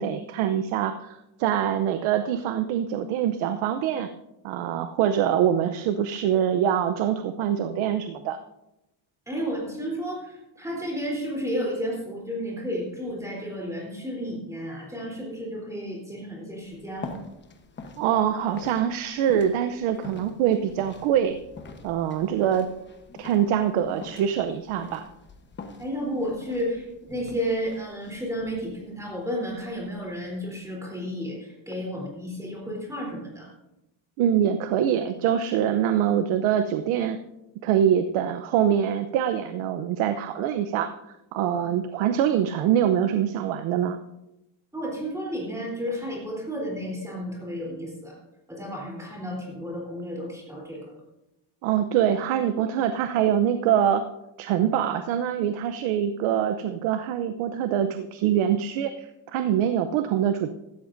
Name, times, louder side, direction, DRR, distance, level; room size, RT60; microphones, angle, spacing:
voice 1, 0.0-4.1 4.4-8.4 18.0-21.4 21.8-22.7 23.2-25.1 34.2-37.2 37.6-40.9 41.3-44.0 51.6-54.0 54.4-60.5, right 9 dB, 85° right, 9 dB, 0.8 m, -24 dB
voice 2, 9.3-17.1 25.8-33.5 44.7-48.2 48.5-50.9, equal, 5° right, -3 dB, 3.5 m, -32 dB
sound 1, 16.6-30.6, left 4 dB, 25° left, 1.0 m, -46 dB
15.5 x 13.5 x 2.6 m, 0.91 s
cardioid pair, 170°, 48 cm